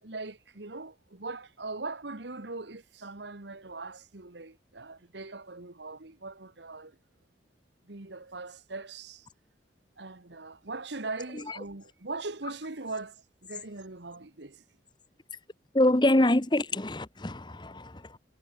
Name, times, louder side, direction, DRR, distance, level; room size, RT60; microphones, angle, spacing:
voice 1, 0.0-7.0 7.8-9.3 10.0-14.6, right 3 dB, 70° right, 1.6 m, -40 dB
voice 2, 15.7-18.2, left 1 dB, 25° left, 1.0 m, -25 dB
head